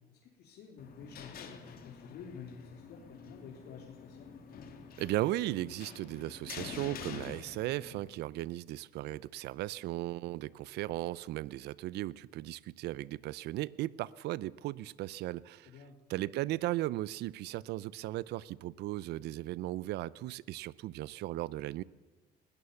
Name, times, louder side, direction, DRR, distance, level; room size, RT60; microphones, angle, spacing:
voice 1, 0.1-4.3 15.7-16.0, left 6 dB, 80° left, 3.9 m, -50 dB
sound 1, 0.8-8.1, left 6 dB, 60° left, 3.0 m, -48 dB
voice 2, 5.0-15.7 16.1-21.8, right 16 dB, 80° right, 0.7 m, -36 dB
21.0 x 18.0 x 7.1 m
cardioid pair, 110°, 17 cm